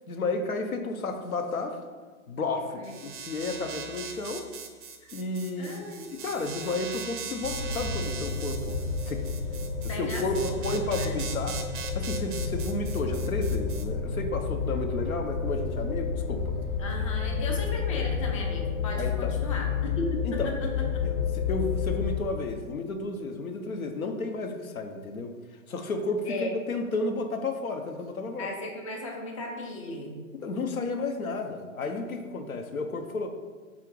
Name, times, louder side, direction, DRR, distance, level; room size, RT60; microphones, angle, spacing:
voice 1, 0.1-1.8 2.3-4.5 5.1-5.8 6.1-8.8 9.0-9.2 9.8-11.6 12.0-16.5 19.0-19.3 20.2-20.5 21.0-25.3 25.7-28.5 30.4-33.3, left 3 dB, 90° left, 5 dB, 0.6 m, -32 dB
sound 1, 2.8-13.8, right 6 dB, 40° right, 0.4 m, -40 dB
voice 2, 5.6-6.1 9.4-9.5 9.9-10.5 10.9-11.1 16.8-21.0 26.2-26.5 28.4-30.1, left 1 dB, 25° left, 0 dB, 0.3 m, -36 dB
sound 2, 7.4-22.2, left 5 dB, 65° left, 0.9 m, -30 dB
3.6 x 2.4 x 4.5 m, 1.4 s
figure-of-eight pair, 120°, 41 cm